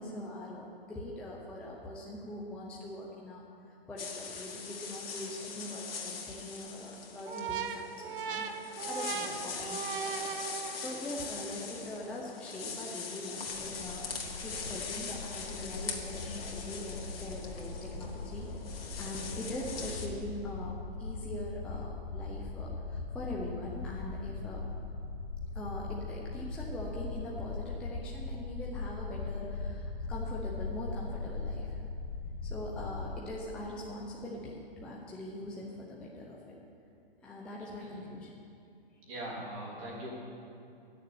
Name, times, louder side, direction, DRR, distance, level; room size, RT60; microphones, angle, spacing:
voice 1, 0.0-3.5 3.9-10.3 10.7-14.1 14.4-18.5 19.0-24.6 25.5-31.8 32.4-36.4 37.2-38.3, left 1 dB, 5° left, -4 dB, 0.5 m, -42 dB
sound 1, 4.0-20.1, left 5 dB, 70° left, 1.9 m, -42 dB
sound 2, 7.2-11.1, right 7 dB, 60° right, 0.9 m, -38 dB
sound 3, 13.6-33.2, left 3 dB, 40° left, 1.0 m, -40 dB
voice 2, 39.1-40.1, right 1 dB, 35° right, -4 dB, 3.3 m, -41 dB
9.8 x 6.8 x 8.9 m, 2.5 s
hypercardioid pair, 150°, 30 cm